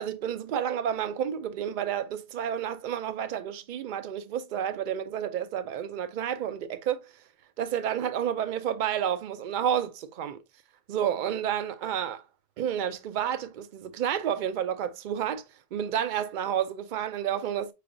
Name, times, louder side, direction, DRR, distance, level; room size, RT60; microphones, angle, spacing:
voice 1, 0.0-7.1 7.6-10.4 10.9-12.2 12.6-15.4 15.7-17.7, right 9 dB, 60° right, 0.6 m, -30 dB
5.8 x 3.3 x 2.5 m
omnidirectional pair, 1.1 m